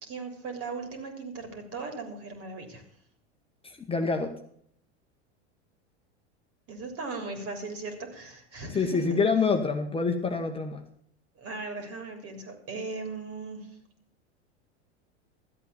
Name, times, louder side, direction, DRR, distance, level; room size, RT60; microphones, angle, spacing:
voice 1, 0.0-2.8 6.7-9.2 11.4-13.7, right 3 dB, 40° right, 6 dB, 3.5 m, -38 dB
voice 2, 3.6-4.3 8.7-10.8, left 4 dB, 15° left, 3 dB, 1.2 m, -26 dB
13.0 x 8.2 x 6.9 m, 0.65 s
hypercardioid pair, 95°, 35 cm